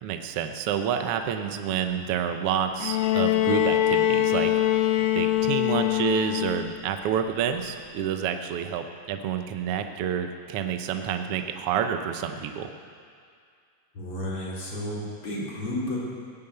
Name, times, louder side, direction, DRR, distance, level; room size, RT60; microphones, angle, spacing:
voice 1, 0.0-4.5 5.1-12.7, right 8 dB, 85° right, 7 dB, 1.2 m, -28 dB
voice 2, 1.8-2.1 13.9-16.0, left 1 dB, 40° left, -5 dB, 4.0 m, -32 dB
Bowed string instrument, 2.8-6.8 8.1-8.2, left 13 dB, 85° left, 1.5 m, -23 dB
16.5 x 9.7 x 8.0 m, 2.2 s
omnidirectional pair, 3.9 m